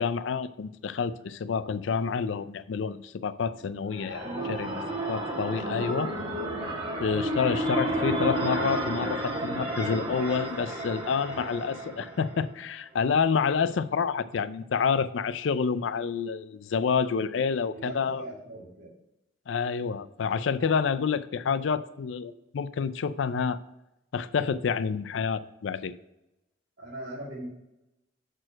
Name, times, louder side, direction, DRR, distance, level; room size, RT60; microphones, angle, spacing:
voice 1, 0.0-4.2 4.5-4.7 5.1-6.1 7.0-18.2 19.5-23.6 24.1-25.9, left 6 dB, 85° left, 14 dB, 0.4 m, -28 dB
sound 1, 3.6-12.4, right 1 dB, 30° right, 1.4 m, -31 dB
voice 2, 4.2-4.9 7.0-7.2 11.3-11.4 11.7-12.1 17.7-18.9 26.8-27.5, right 1 dB, 75° right, -10 dB, 2.8 m, -41 dB
6.2 x 4.4 x 6.1 m, 0.90 s
head